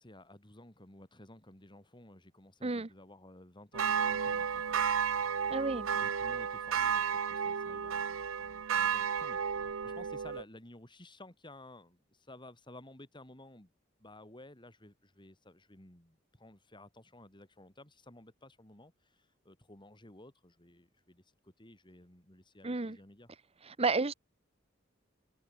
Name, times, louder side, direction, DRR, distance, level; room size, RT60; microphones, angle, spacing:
voice 1, 0.0-4.8 5.9-13.7 14.0-23.3, left 1 dB, 25° left, 4.1 m, -55 dB
sound 1, 3.7-10.4, right 7 dB, 85° right, 0.7 m, -32 dB
voice 2, 5.5-5.9 22.6-23.0 23.7-24.1, right 3 dB, 30° right, 0.9 m, -31 dB
head